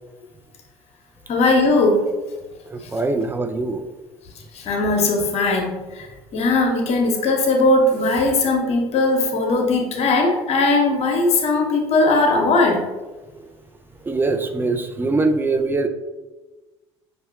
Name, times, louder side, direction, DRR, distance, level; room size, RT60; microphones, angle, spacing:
voice 1, 1.3-2.1 4.5-6.0 6.3-12.8, left 2 dB, 45° left, 2 dB, 0.8 m, -19 dB
voice 2, 2.7-3.8 13.4-13.5 14.0-15.9, right 3 dB, 15° right, 7 dB, 0.3 m, -23 dB
5.1 x 2.7 x 2.3 m, 1.2 s
figure-of-eight pair, 60°, 14 cm